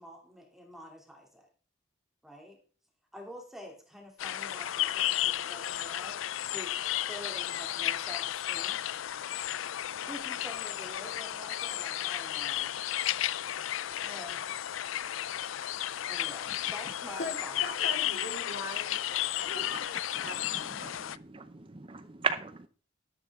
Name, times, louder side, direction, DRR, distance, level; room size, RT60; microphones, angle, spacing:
voice 1, 0.0-1.5 2.2-2.6 3.1-6.2 6.5-6.8 7.1-8.8 10.1-12.7 14.0-14.7 16.1-17.8, equal, ahead, 2.8 m, -47 dB
sound 1, 4.2-21.2, left 12 dB, 85° left, 0.4 m, -33 dB
voice 2, 17.2-20.5, left 2 dB, 60° left, 4.0 m, -41 dB
voice 3, 20.1-22.7, right 5 dB, 25° right, 0.6 m, -37 dB
12.5 x 11.0 x 3.6 m
head